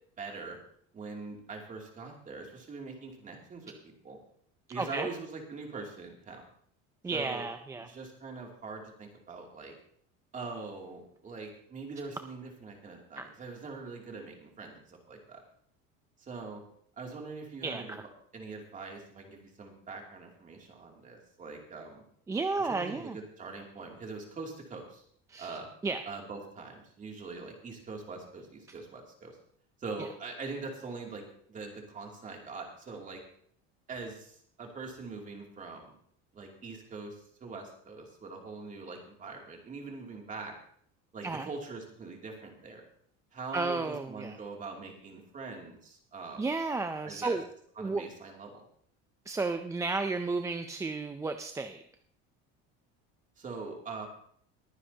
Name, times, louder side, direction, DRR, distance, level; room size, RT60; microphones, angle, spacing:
voice 1, 0.2-0.6 0.9-4.2 4.7-6.4 7.1-7.5 7.9-9.7 10.3-15.4 16.2-16.6 17.0-17.9 18.3-22.0 22.6-25.0 25.4-25.7 26.0-29.4 29.8-33.2 33.9-35.9 36.3-40.5 41.1-42.8 43.3-46.5 47.0-47.4 47.8-48.7 53.4-54.1, right 4 dB, 25° right, 1 dB, 2.8 m, -43 dB
voice 2, 4.8-5.1 7.0-7.9 13.2-13.3 17.6-18.0 22.3-23.2 25.3-25.6 25.8-26.0 41.2-41.5 43.5-44.4 46.4-47.5 47.8-48.1 49.3-51.8, right 3 dB, 10° right, 7 dB, 0.5 m, -33 dB
22.0 x 9.8 x 2.9 m, 0.63 s
cardioid pair, 150°, 30 cm